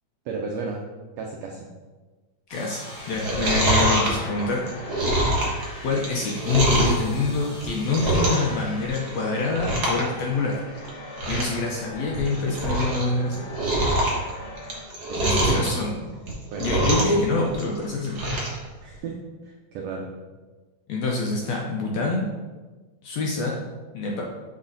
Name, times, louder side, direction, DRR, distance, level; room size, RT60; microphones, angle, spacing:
voice 1, 0.3-0.8 1.2-1.7 15.1-15.7 16.5-16.9 18.8-19.2 19.4-20.1, right 4 dB, 85° right, 0 dB, 1.4 m, -33 dB
voice 2, 2.5-2.8 3.1-5.1 5.8-10.6 11.3-13.4 15.2-16.1 16.6-18.2 20.9-22.3 23.0-23.5 23.9-24.2, left 3 dB, 75° left, -1 dB, 1.6 m, -26 dB
sound 1, 2.5-14.8, left 1 dB, 15° left, 1.4 m, -41 dB
Chewing mastication, 3.0-7.0 7.5-8.5 8.8-9.2 9.5-10.0 10.3-10.4 10.8-10.9 11.1-11.6 12.0-13.0 13.3-15.7 16.2-17.2 17.5-18.6 18.9-19.0, right 1 dB, 55° right, 1.1 m, -24 dB
6.5 x 4.2 x 3.9 m, 1.3 s
omnidirectional pair, 3.6 m